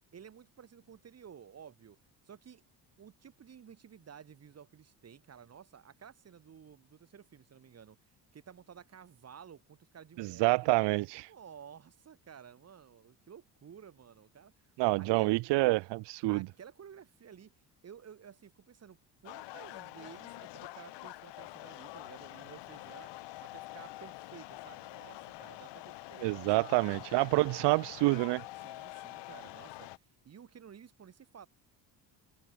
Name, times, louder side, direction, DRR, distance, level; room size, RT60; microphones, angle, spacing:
voice 1, 0.1-2.0 2.2-2.6 3.0-8.0 8.3-10.7 11.3-15.4 16.3-17.5 17.8-19.0 19.2-23.1 23.4-27.0 28.6-31.5, right 8 dB, 35° right, 6.8 m, -53 dB
voice 2, 10.2-11.3 14.8-16.5 26.2-28.4, right 22 dB, 80° right, 0.8 m, -27 dB
sound 1, 19.2-30.0, left 18 dB, 80° left, 3.5 m, -46 dB
cardioid pair, 145°, 41 cm